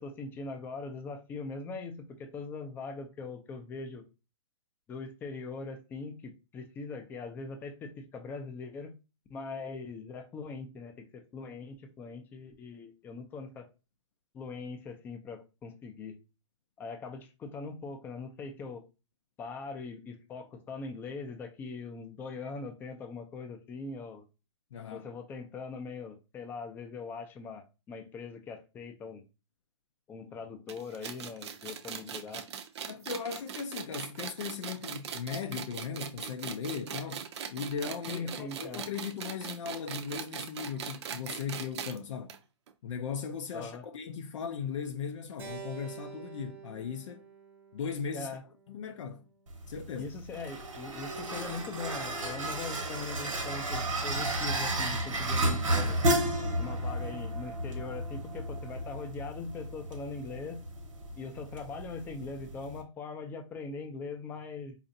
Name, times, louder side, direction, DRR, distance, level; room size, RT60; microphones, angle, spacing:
voice 1, 0.0-4.0 4.9-8.9 9.3-13.7 14.3-16.1 16.8-18.8 19.4-24.3 24.9-29.2 30.1-32.4 38.1-38.8 43.5-43.8 48.1-48.4 50.0-56.0 56.6-60.6 61.2-64.8, left 4 dB, 10° left, 0.4 m, -41 dB
voice 2, 24.7-25.1 32.9-37.3 37.5-42.4 42.8-47.2 47.7-48.4 48.7-49.3 49.7-50.1, left 6 dB, 70° left, 0.4 m, -38 dB
sound 1, 30.7-42.0 42.3-42.4 42.7-42.8 43.6-43.7, right 7 dB, 60° right, 0.5 m, -40 dB
Keyboard (musical), 45.4-49.8, right 8 dB, 15° right, 0.8 m, -49 dB
sound 2, 49.5-62.8, right 1 dB, 90° right, 1.0 m, -33 dB
4.1 x 2.4 x 2.6 m
hypercardioid pair, 145°, 16 cm